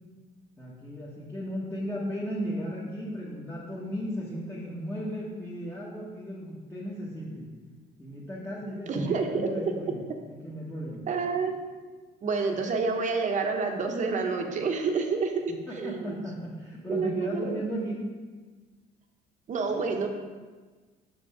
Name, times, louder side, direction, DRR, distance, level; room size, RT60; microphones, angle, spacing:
voice 1, 0.6-7.5 8.0-11.0 15.7-18.0, equal, 10° left, -7 dB, 1.4 m, -35 dB
voice 2, 8.9-9.5 11.1-11.6 12.2-15.3 15.7-16.1 16.9-17.6 19.5-20.1, right 4 dB, 45° right, 3 dB, 1.0 m, -28 dB
6.5 x 5.2 x 4.9 m, 1.4 s
cardioid pair, 110°, 17 cm